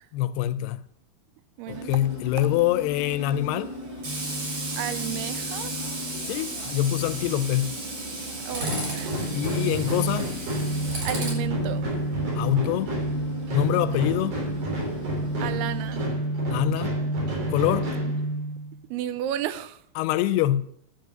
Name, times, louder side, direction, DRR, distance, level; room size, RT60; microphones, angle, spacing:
voice 1, 0.1-0.8 1.7-3.7 6.2-7.8 9.3-10.3 12.4-12.9 13.5-14.4 16.5-16.9 17.5-17.9 20.0-20.6, left 13 dB, 85° left, 2.6 m, -25 dB
voice 2, 1.6-1.9 4.7-5.7 8.5-9.3 11.0-11.9 13.9-14.1 15.4-16.0 18.9-19.8, right 11 dB, 80° right, 2.6 m, -33 dB
Tools, 1.7-16.0, right 1 dB, 40° right, 4.8 m, -35 dB
sound 1, 8.6-18.8, right 1 dB, 65° right, 5.5 m, -29 dB
10.5 x 7.6 x 6.7 m
omnidirectional pair, 4.7 m